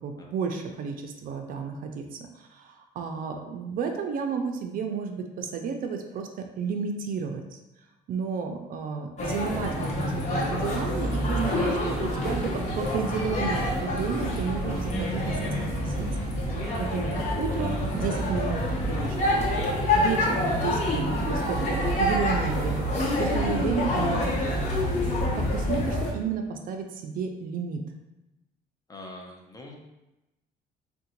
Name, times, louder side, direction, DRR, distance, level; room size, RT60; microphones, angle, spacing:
voice 1, 0.0-7.6 8.1-16.1 16.5-19.6 19.9-22.9 23.2-24.8 25.4-27.8, right 6 dB, 55° right, 4 dB, 0.4 m, -32 dB
sound 1, 9.2-26.1, left 1 dB, 45° left, 0.9 m, -27 dB
voice 2, 28.9-29.9, left 1 dB, 20° left, 0 dB, 0.5 m, -44 dB
3.6 x 2.2 x 2.9 m, 0.97 s
cardioid pair, 110°, 17 cm